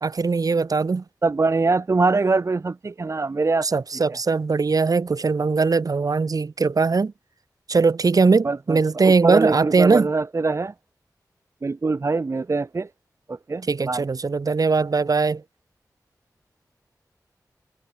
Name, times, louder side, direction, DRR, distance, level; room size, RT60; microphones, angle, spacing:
voice 1, 0.0-1.0 3.6-7.1 7.7-10.1 13.7-15.4, right 4 dB, 65° right, 1.1 m, -20 dB
voice 2, 1.2-3.8 8.4-10.7 11.6-12.9 13.3-14.1, right 3 dB, 45° right, 0.6 m, -23 dB
wide cardioid pair, 80°, 7 cm